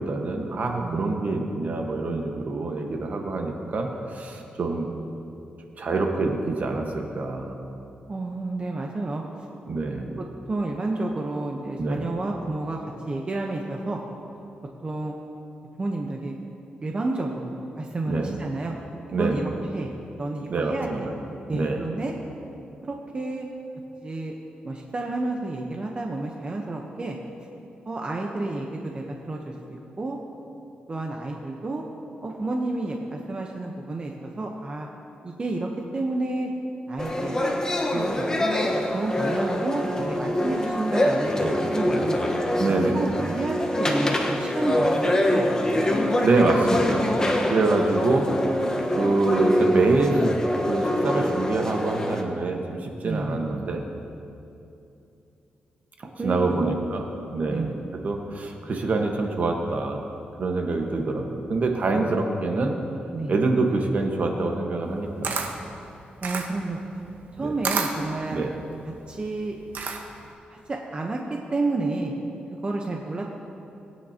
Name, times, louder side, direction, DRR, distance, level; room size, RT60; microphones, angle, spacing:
voice 1, 0.0-4.9 5.8-7.5 9.7-10.1 11.8-12.1 18.1-18.4 19.1-19.4 20.5-21.1 21.5-21.8 42.6-43.0 46.2-47.2 47.5-48.3 48.9-50.2 50.7-53.8 56.0-57.0 57.3-57.8 58.0-60.1 60.4-62.8 63.3-65.5 67.4-67.5 68.3-68.5, right 3 dB, 50° right, 2 dB, 1.4 m, -25 dB
voice 2, 0.8-1.1 8.1-9.2 10.2-14.0 14.8-15.1 15.8-16.4 16.8-18.8 19.2-19.9 20.2-21.1 21.5-22.1 22.8-23.5 24.0-24.3 24.6-27.2 27.9-30.2 30.9-31.8 32.2-34.9 35.2-36.5 36.9-37.4 37.9-38.5 38.9-42.2 42.7-44.9 45.3-46.0 53.0-53.4 56.2-56.7 57.5-57.7 61.9-62.2 63.1-63.3 66.2-66.8 67.3-68.4 69.1-69.5 70.5-72.1 72.6-73.3, right 2 dB, 35° right, 0 dB, 1.0 m, -30 dB
sound 1, 37.0-52.2, left 1 dB, 20° left, 1.2 m, -25 dB
Camera, 64.8-70.3, right 5 dB, 75° right, 1.1 m, -32 dB
21.0 x 9.4 x 2.9 m, 2.8 s
cardioid pair, 100°, 3 cm